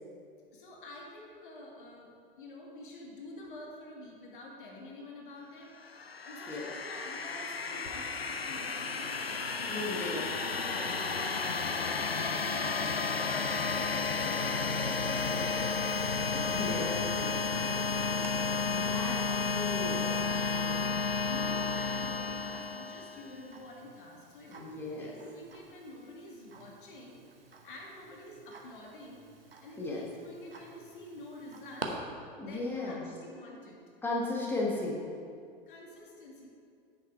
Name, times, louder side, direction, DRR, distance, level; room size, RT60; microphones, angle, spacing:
voice 1, 0.5-10.2 10.7-19.4 20.2-20.5 21.2-24.7 25.0-27.2 27.4-29.2 29.6-32.0 32.3-33.8 35.7-36.5, left 1 dB, 60° left, -1 dB, 1.7 m, -48 dB
sound 1, 5.8-23.4, left 4 dB, 90° left, 0.5 m, -32 dB
voice 2, 9.7-10.2 10.6-10.9 16.5-17.0 18.7-19.2 19.5-20.8 24.5-25.1 29.8-30.1 32.4-33.0 34.0-35.0, left 2 dB, 5° left, -4 dB, 1.3 m, -36 dB
Tick-tock, 13.0-31.9, right 5 dB, 75° right, 1.0 m, -52 dB
8.5 x 6.6 x 4.6 m, 2.3 s
figure-of-eight pair, 90°, 29 cm